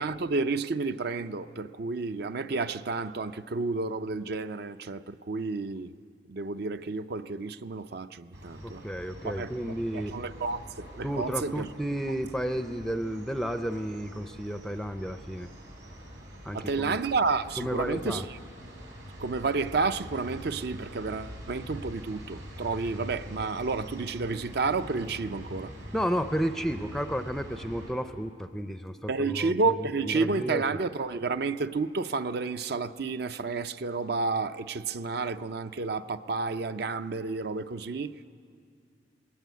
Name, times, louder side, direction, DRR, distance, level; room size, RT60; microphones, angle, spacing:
voice 1, 0.0-5.9 6.3-8.8 9.2-9.5 9.9-11.7 16.5-18.4 19.2-25.7 29.1-38.3, right 4 dB, 60° right, 0.6 m, -31 dB
sound 1, 8.3-27.9, equal, 85° right, 5.2 m, -44 dB
voice 2, 8.6-10.1 11.0-15.5 16.4-17.0 17.6-18.3 25.9-29.5 30.0-30.6, equal, ahead, 0.4 m, -32 dB
20.5 x 17.5 x 9.3 m
head